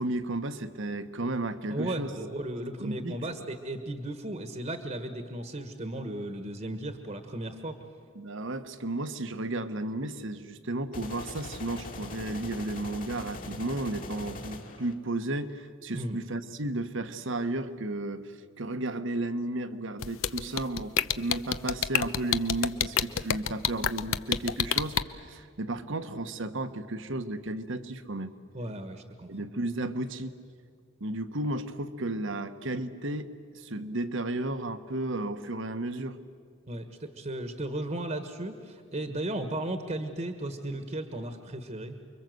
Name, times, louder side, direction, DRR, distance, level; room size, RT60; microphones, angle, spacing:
voice 1, 0.0-2.1 2.8-3.2 8.1-28.3 29.3-30.3 31.0-36.2, right 2 dB, 65° right, 10 dB, 1.3 m, -33 dB
voice 2, 1.7-7.8 15.9-16.2 28.5-29.3 36.7-41.9, right 1 dB, 35° right, 7 dB, 1.4 m, -35 dB
sound 1, 10.9-14.9, left 2 dB, 45° left, 2.4 m, -41 dB
sound 2, 20.0-25.0, left 9 dB, 75° left, 0.8 m, -26 dB
29.0 x 23.5 x 7.9 m, 2.1 s
head